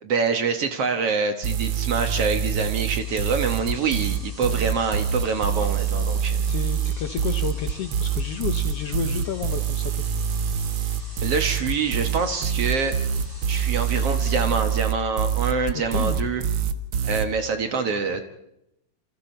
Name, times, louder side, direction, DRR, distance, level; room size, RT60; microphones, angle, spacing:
voice 1, 0.0-6.4 11.2-13.0 13.5-16.4 17.0-18.2, right 5 dB, 55° right, 7 dB, 2.0 m, -25 dB
sound 1, 1.4-17.3, right 7 dB, 75° right, 1.1 m, -25 dB
sound 2, 2.9-14.4, right 1 dB, 30° right, 7.4 m, -45 dB
voice 2, 6.5-10.1 15.7-16.2, left 8 dB, 65° left, 8 dB, 1.5 m, -31 dB
28.0 x 26.5 x 4.5 m, 0.81 s
omnidirectional pair, 3.9 m